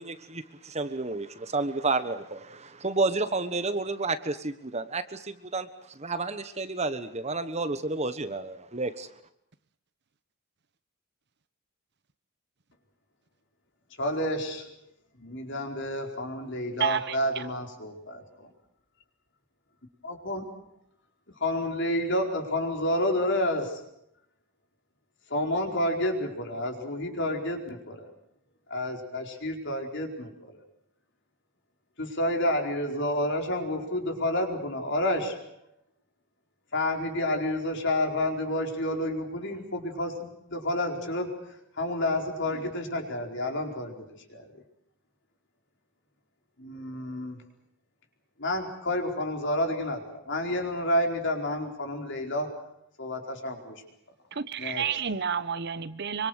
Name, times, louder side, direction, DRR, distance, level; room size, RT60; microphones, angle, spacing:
voice 1, 0.0-9.1, right 3 dB, 30° right, 10 dB, 1.3 m, -31 dB
voice 2, 14.0-14.8 15.2-18.1 20.0-20.5 21.4-23.9 25.3-28.1 28.7-30.5 32.0-35.6 36.7-44.5 46.6-47.4 48.4-52.6 53.0-53.8 54.6-54.8, left 1 dB, 55° left, 3 dB, 4.6 m, -30 dB
voice 3, 16.8-17.5 54.3-56.3, right 7 dB, 50° right, 14 dB, 0.9 m, -30 dB
25.5 x 25.0 x 6.6 m, 0.74 s
head